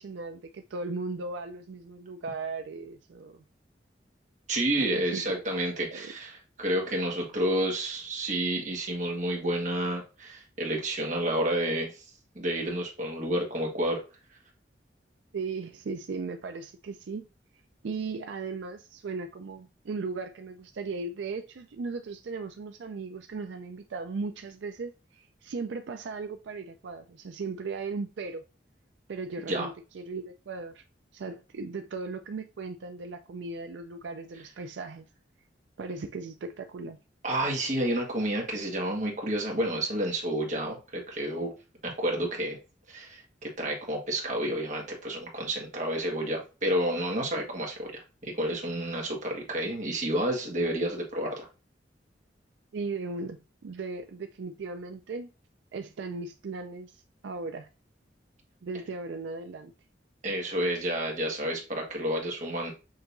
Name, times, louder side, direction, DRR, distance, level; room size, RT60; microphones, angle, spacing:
voice 1, 0.0-3.4 4.8-5.4 5.9-6.1 15.3-17.3 17.8-28.4 29.1-30.8 31.1-35.0 35.8-37.0 52.7-55.3 55.7-57.7 58.6-59.7, right 4 dB, 85° right, 0.4 m, -37 dB
voice 2, 4.5-12.0 12.3-14.0 29.5-29.7 37.2-41.5 41.8-42.6 42.9-51.5 60.2-62.7, right 1 dB, 45° right, 1.6 m, -30 dB
6.5 x 2.9 x 2.6 m
head